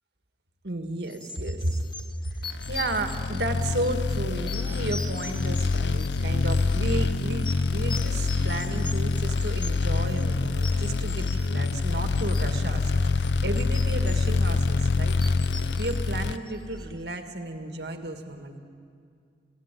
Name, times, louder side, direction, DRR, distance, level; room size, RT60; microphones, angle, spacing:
voice 1, 0.6-1.9 2.2-18.5, right 1 dB, 60° right, 6 dB, 1.9 m, -33 dB
sound 1, 1.1-16.9, left 4 dB, 25° left, 1.2 m, -43 dB
sound 2, 2.6-16.4, left 3 dB, 70° left, 0.7 m, -26 dB
28.5 x 17.5 x 9.2 m, 2.3 s
head